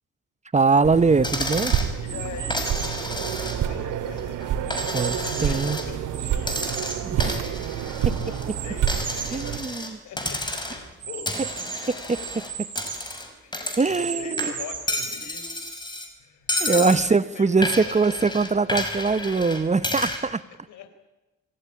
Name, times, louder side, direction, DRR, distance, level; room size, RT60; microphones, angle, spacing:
voice 1, 0.5-1.7 4.9-5.8 7.0-7.5 9.3-10.0 11.4-11.5 12.1-12.2 13.8-14.5 16.6-20.4, right 4 dB, 25° right, 15 dB, 1.0 m, -22 dB
sound 1, 0.8-9.6, right 9 dB, 85° right, 2.7 m, -28 dB
Coin (dropping), 1.2-1.9 2.5-3.8 4.2-5.9 6.4-8.5 8.9-9.9 10.2-10.9 11.3-14.1 14.4-16.1 16.5-17.0 17.6-20.2, left 1 dB, 15° left, 5.4 m, -31 dB
voice 2, 1.9-4.4 5.2-6.9 8.0-9.0 9.5-11.9 12.2-12.3 13.4-15.6 16.2-18.3 20.5-20.9, left 5 dB, 75° left, 10 dB, 4.1 m, -42 dB
sound 2, 2.1-3.0 3.6-5.7 6.1-7.8 8.5-9.4 9.9-10.0 10.2-10.3 11.0-13.1 13.7-15.0, right 7 dB, 55° right, 6.7 m, -36 dB
26.0 x 16.0 x 9.9 m, 1.1 s
cardioid pair, 90°, 30 cm